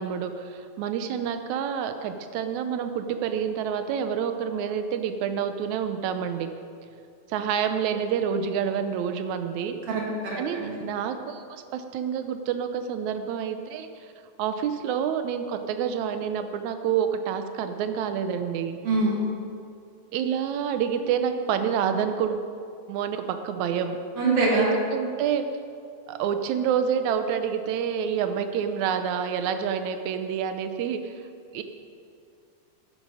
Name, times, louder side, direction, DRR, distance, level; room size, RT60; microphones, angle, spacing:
voice 1, 0.0-6.5 7.3-9.8 10.4-13.9 14.4-18.8 20.1-22.4 22.9-24.0 24.6-25.4 26.1-31.1 31.5-31.6, right 8 dB, 75° right, 8 dB, 1.8 m, -28 dB
voice 2, 9.9-10.8 18.8-19.3 24.2-24.7, right 2 dB, 45° right, -3 dB, 3.2 m, -24 dB
13.0 x 10.5 x 4.9 m, 2.4 s
omnidirectional pair, 4.0 m